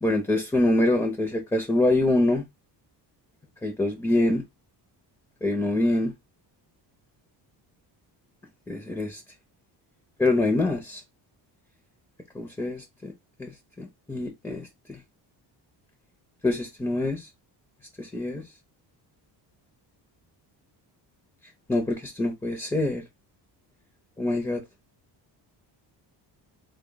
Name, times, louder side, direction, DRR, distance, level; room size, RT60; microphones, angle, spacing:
voice 1, 0.0-2.4 3.6-4.4 5.4-6.1 8.7-9.2 10.2-11.0 12.3-13.1 13.4-13.5 13.8-15.0 16.4-17.2 18.0-18.4 21.7-23.0 24.2-24.6, left 2 dB, 5° left, 0.7 m, -25 dB
3.4 x 2.4 x 3.8 m
cardioid pair, 125°, 45 cm